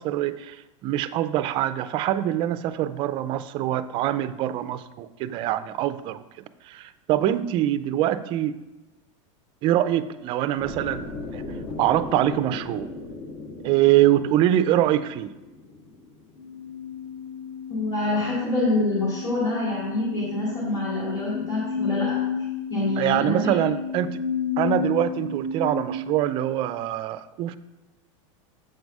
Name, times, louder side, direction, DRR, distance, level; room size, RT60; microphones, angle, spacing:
voice 1, 0.0-6.2 6.6-8.6 9.6-11.4 11.8-12.9 13.6-15.3 23.0-24.2 24.6-27.6, right 12 dB, 30° right, 13 dB, 0.3 m, -24 dB
sound 1, 10.6-16.7, left 3 dB, 65° left, 1.7 m, -38 dB
sound 2, 16.4-26.0, left 6 dB, 45° left, 1.2 m, -31 dB
voice 2, 17.7-22.2 22.7-23.6, left 2 dB, 25° left, -8 dB, 2.2 m, -26 dB
7.7 x 4.7 x 5.3 m, 1.0 s
supercardioid pair, 155°, 16 cm